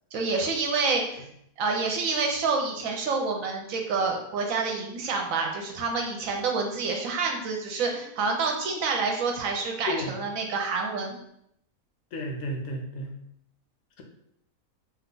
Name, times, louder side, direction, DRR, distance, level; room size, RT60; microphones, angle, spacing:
voice 1, 0.1-1.2 1.6-11.2, right 4 dB, 70° right, 2 dB, 1.0 m, -28 dB
voice 2, 12.1-13.1, left 1 dB, 65° left, 2 dB, 0.8 m, -32 dB
2.9 x 2.3 x 3.7 m, 0.75 s
omnidirectional pair, 1.5 m